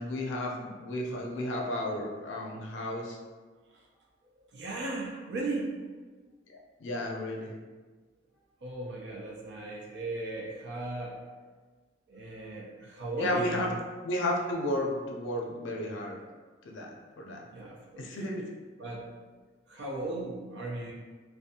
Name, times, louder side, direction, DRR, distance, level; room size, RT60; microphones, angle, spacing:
voice 1, 0.0-3.2 6.5-7.5 13.2-13.7 14.0-16.2 16.7-17.5 18.0-18.4, left 1 dB, 85° left, 0 dB, 0.4 m, -33 dB
voice 2, 4.4-5.8 8.6-11.2 12.1-13.7 17.5-18.2 18.8-19.1 19.7-20.9, right 2 dB, 65° right, -3 dB, 0.4 m, -37 dB
2.5 x 2.1 x 2.6 m, 1.4 s
head